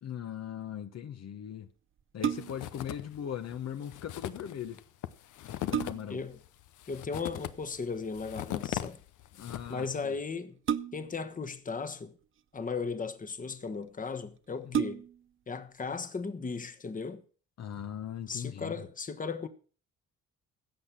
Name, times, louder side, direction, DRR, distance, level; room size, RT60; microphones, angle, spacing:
voice 1, 0.0-1.7 2.1-4.8 5.6-6.2 9.4-10.2 14.6-14.8 17.6-18.9, left 9 dB, 55° left, 1.1 m, -39 dB
sound 1, 2.0-2.8 4.8-4.9 5.3-6.3 7.8-8.2 10.6-11.3 12.2-12.9 13.7-13.8 14.1-14.2 14.7-15.3 15.8-15.9, right 9 dB, 45° right, 0.7 m, -33 dB
sound 2, 2.3-3.2 3.5-3.6 3.8-9.9, left 13 dB, 80° left, 0.8 m, -39 dB
voice 2, 6.9-9.0 9.7-10.6 10.9-12.2 12.5-15.0 15.5-17.2 18.3-19.5, left 4 dB, 25° left, 1.2 m, -36 dB
16.0 x 6.6 x 6.0 m
cardioid pair, 90°, 30 cm